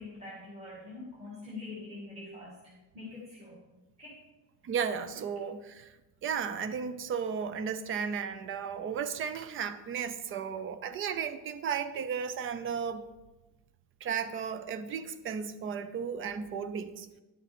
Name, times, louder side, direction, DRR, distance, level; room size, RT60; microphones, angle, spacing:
voice 1, 0.0-2.6 2.9-3.6 4.0-4.2, left 3 dB, 15° right, 2.0 m, -44 dB
voice 2, 4.6-5.9 6.2-13.0 14.0-17.1, right 7 dB, 30° right, 0.5 m, -34 dB
11.0 x 6.5 x 4.4 m
cardioid pair, 165°, 40 cm